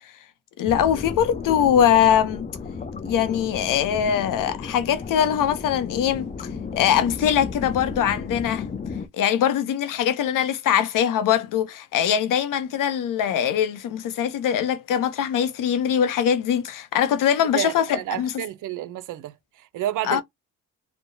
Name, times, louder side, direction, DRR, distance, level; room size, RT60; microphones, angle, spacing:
voice 1, 0.6-2.5 3.1-6.5 6.8-8.7 9.2-18.3 20.0-20.2, left 9 dB, 65° left, 0.7 m, -22 dB
sound 1, 0.7-9.1, left 5 dB, 25° left, 0.5 m, -33 dB
voice 2, 17.5-19.3 19.7-20.2, right 12 dB, 60° right, 0.5 m, -29 dB
2.8 x 2.2 x 2.6 m
cardioid pair, 80°, 34 cm